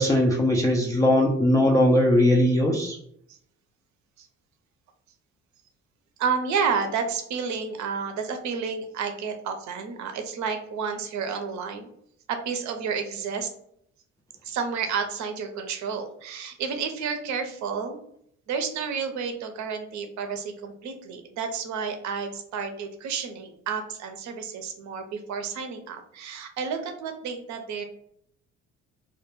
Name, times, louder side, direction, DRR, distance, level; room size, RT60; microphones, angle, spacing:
voice 1, 0.0-3.0, left 1 dB, 10° left, -3 dB, 0.3 m, -20 dB
voice 2, 6.2-11.9 12.3-13.5 14.4-18.0 18.5-27.8, right 6 dB, 50° right, 6 dB, 0.6 m, -30 dB
2.2 x 2.2 x 3.0 m, 0.70 s
hypercardioid pair, 50°, 36 cm